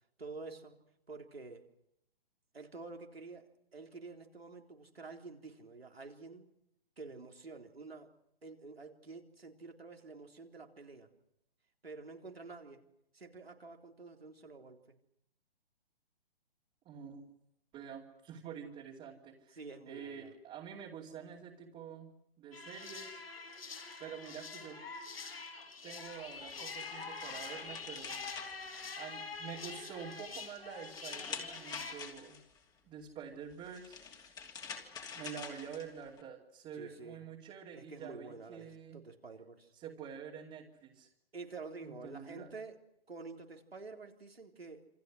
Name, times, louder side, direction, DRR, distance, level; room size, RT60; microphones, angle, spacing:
voice 1, 0.2-0.8 1.1-1.6 2.5-6.5 7.0-8.1 8.4-11.1 11.8-12.8 13.1-15.0 19.5-20.3 36.7-37.2 37.7-39.7 41.3-42.8 43.1-44.9, right 3 dB, 80° right, 3 dB, 3.8 m, -49 dB
voice 2, 16.8-17.3 17.7-19.6 19.9-22.1 22.4-23.2 24.0-24.8 25.8-28.2 29.0-32.4 32.8-34.3 35.1-39.0 39.7-41.1 41.8-42.6, right 7 dB, 20° right, -3 dB, 2.8 m, -47 dB
sound 1, 22.5-31.9, left 4 dB, 75° left, 7.1 m, -45 dB
sound 2, 26.1-29.5 29.9-32.6 33.5-36.2, left 6 dB, 15° left, 2.9 m, -48 dB
27.5 x 26.5 x 6.4 m, 0.81 s
figure-of-eight pair, 130°, 30 cm